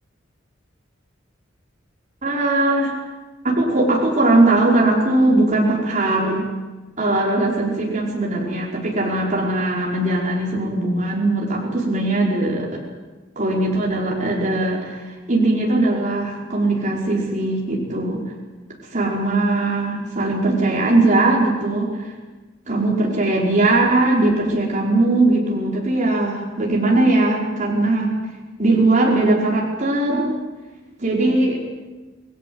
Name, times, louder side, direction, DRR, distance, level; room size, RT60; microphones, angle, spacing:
voice 1, 2.2-2.9 3.4-6.5 7.0-12.8 13.4-18.2 18.9-22.1 22.7-28.1 28.6-30.3 31.0-31.6, right 2 dB, 40° right, -3 dB, 5.2 m, -19 dB
28.5 x 19.5 x 8.0 m, 1.2 s
head